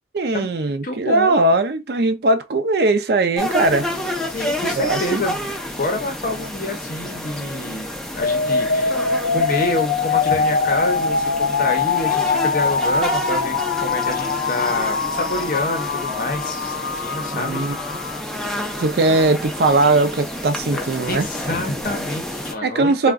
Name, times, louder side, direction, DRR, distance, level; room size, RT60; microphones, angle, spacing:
voice 1, 0.1-3.9 4.7-5.2 17.3-17.8 18.8-21.3 22.6-23.1, right 2 dB, 60° right, 0.4 m, -19 dB
voice 2, 0.8-1.4 4.3-7.9 8.1-9.0 9.3-17.6 20.7-23.1, left 1 dB, 45° left, 0.7 m, -27 dB
sound 1, 3.4-22.5, left 1 dB, 5° left, 0.5 m, -30 dB
sound 2, 8.2-18.2, left 5 dB, 70° left, 0.3 m, -22 dB
2.3 x 2.1 x 3.5 m
head